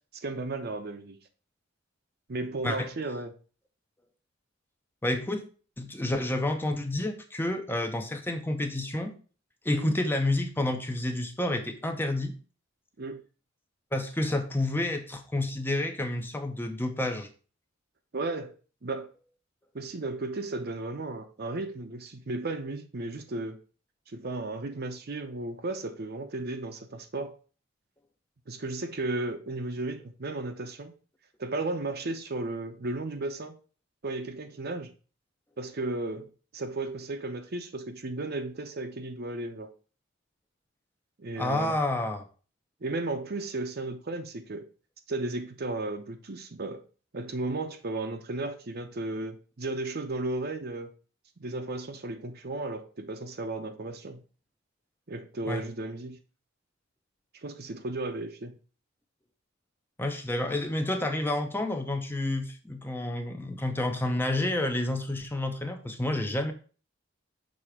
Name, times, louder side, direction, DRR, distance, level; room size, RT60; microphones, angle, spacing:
voice 1, 0.1-1.2 2.3-3.3 9.7-10.0 13.0-13.2 18.1-18.5 18.8-19.1 19.7-23.6 24.1-27.4 28.5-30.9 31.4-33.5 34.0-34.9 35.6-39.7 41.2-41.8 42.8-44.6 45.1-46.8 47.1-50.9 51.4-54.2 55.1-56.2 57.3-58.6, right 2 dB, 50° right, 0.7 m, -34 dB
voice 2, 5.0-5.4 5.8-9.1 9.6-12.3 13.9-17.3 41.4-42.2 55.5-55.6 60.0-66.5, left 1 dB, 10° left, 0.6 m, -29 dB
6.3 x 3.4 x 4.9 m
head